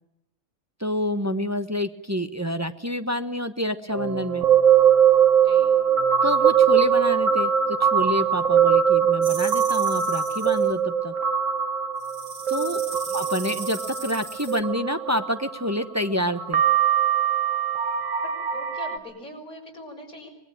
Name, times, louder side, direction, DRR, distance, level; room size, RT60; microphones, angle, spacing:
voice 1, 0.8-4.4 6.2-7.5 7.8-11.1 12.5-12.8 13.1-16.6, equal, 15° right, 9 dB, 0.9 m, -28 dB
sound 1, 3.9-15.7 16.4-19.0, right 8 dB, 60° right, 1.7 m, -21 dB
sound 2, 9.2-10.7 12.0-14.6, right 4 dB, 90° right, 2.8 m, -38 dB
voice 2, 18.5-20.3, equal, 85° left, -1 dB, 5.4 m, -42 dB
24.0 x 20.5 x 9.3 m, 0.83 s
omnidirectional pair, 1.5 m